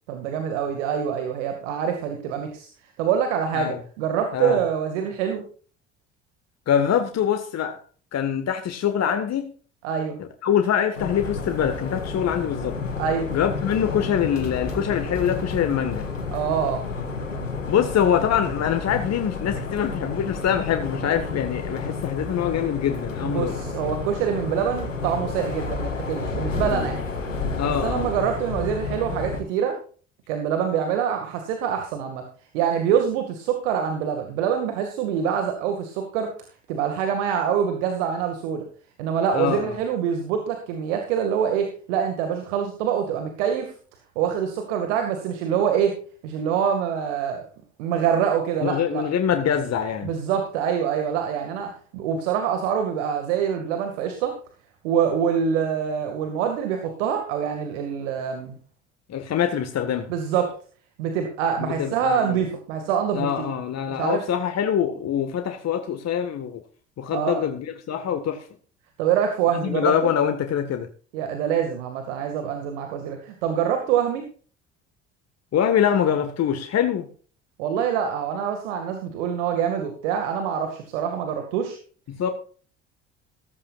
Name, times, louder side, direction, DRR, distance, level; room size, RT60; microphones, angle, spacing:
voice 1, 0.1-2.7 3.0-5.4 9.8-10.2 13.0-13.3 16.3-16.8 23.2-27.0 27.6-29.8 30.3-32.2 32.5-36.3 36.7-38.6 39.0-43.7 44.2-46.0 46.2-47.5 47.8-49.0 50.0-54.3 54.8-58.5 60.1-60.5 61.0-63.5 63.9-64.2 67.1-67.4 69.0-70.1 71.1-74.2 77.6-81.8, right 8 dB, 70° right, 2.1 m, -25 dB
voice 2, 6.7-7.8 8.1-9.5 10.4-12.8 13.3-16.0 17.7-23.5 27.6-28.1 39.3-39.7 48.6-50.1 59.1-60.1 61.6-62.4 63.1-66.6 67.0-68.4 69.6-70.9 75.5-77.1 82.1-82.3, left 9 dB, 45° left, 1.7 m, -24 dB
sound 1, 10.9-29.4, left 4 dB, 90° left, 1.9 m, -30 dB
15.0 x 14.0 x 2.5 m
figure-of-eight pair, 60°, 37 cm